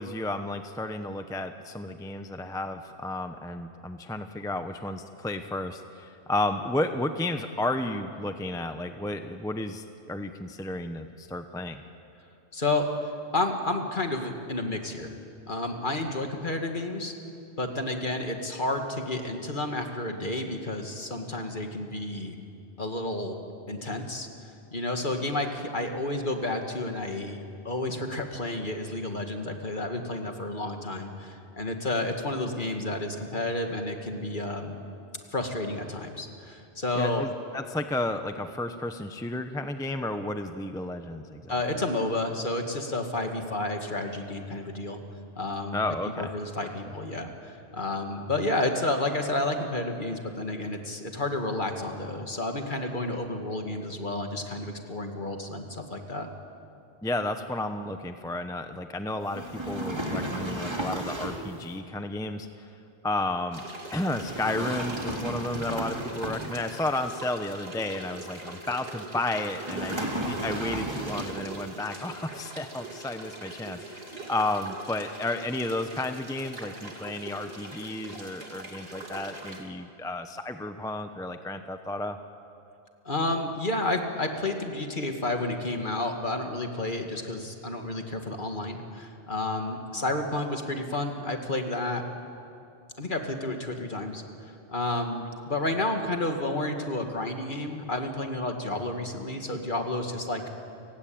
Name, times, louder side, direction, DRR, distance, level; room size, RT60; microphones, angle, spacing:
voice 1, 0.0-11.8 36.9-41.5 45.7-46.3 57.0-62.7 63.0-63.6 63.9-82.2, left 2 dB, 5° left, 7 dB, 0.8 m, -32 dB
voice 2, 12.5-15.1 15.5-17.1 17.6-22.4 22.8-23.4 23.7-34.8 35.3-37.3 41.5-45.0 45.4-45.8 46.2-56.3 83.1-92.0 93.0-94.2 94.7-100.5, left 2 dB, 45° left, 4 dB, 2.2 m, -31 dB
sound 1, 59.3-61.6 64.1-66.8 69.6-71.5, right 1 dB, 25° right, 2.6 m, -33 dB
sound 2, 63.5-79.6, right 2 dB, 60° right, 2.8 m, -42 dB
30.0 x 17.0 x 8.8 m, 2.6 s
omnidirectional pair, 1.2 m